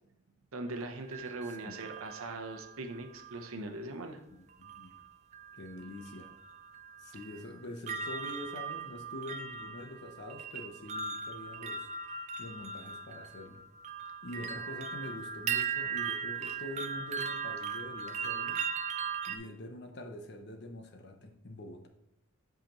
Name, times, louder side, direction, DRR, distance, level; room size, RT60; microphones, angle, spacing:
voice 1, 0.5-4.2, right 2 dB, 90° right, 5 dB, 0.8 m, -40 dB
sound 1, 0.7-3.5 4.6-5.0 5.3-19.4, right 6 dB, 35° right, 0.4 m, -39 dB
voice 2, 1.5-1.8 4.3-4.9 5.5-6.3 7.0-11.9 12.4-13.7 14.2-18.6 19.3-21.9, left 1 dB, 55° left, 5 dB, 0.8 m, -45 dB
7.6 x 5.0 x 3.0 m, 0.83 s
head